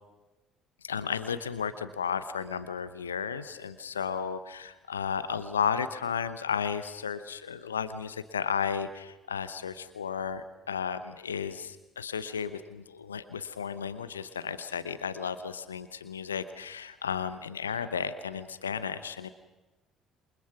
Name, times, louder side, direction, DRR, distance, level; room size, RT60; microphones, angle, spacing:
voice 1, 0.8-19.3, left 7 dB, 80° left, 13 dB, 0.9 m, -33 dB
28.0 x 24.5 x 6.1 m, 1.1 s
figure-of-eight pair, 55°, 0 cm